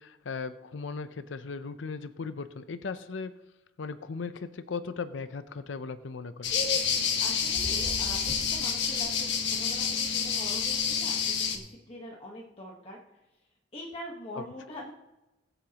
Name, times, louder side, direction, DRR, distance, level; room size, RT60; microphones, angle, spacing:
voice 1, 0.0-3.3 3.8-6.5 14.4-14.5, left 4 dB, 80° left, 11 dB, 0.6 m, -37 dB
sound 1, 6.4-11.6, left 6 dB, 65° left, 1.6 m, -28 dB
voice 2, 7.2-13.0 13.7-14.9, left 1 dB, 30° left, -2 dB, 1.2 m, -43 dB
22.0 x 8.1 x 2.9 m, 1.0 s
head